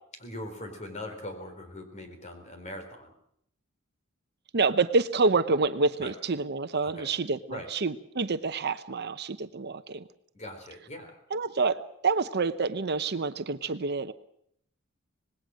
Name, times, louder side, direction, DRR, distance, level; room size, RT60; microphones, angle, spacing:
voice 1, 0.2-3.1 6.0-6.1 6.8-7.1 7.5-7.7 10.3-11.2, left 1 dB, 35° left, 6 dB, 4.1 m, -41 dB
voice 2, 4.5-10.1 11.3-14.1, right 4 dB, 55° right, 11 dB, 0.9 m, -27 dB
25.5 x 19.5 x 6.4 m, 0.70 s
head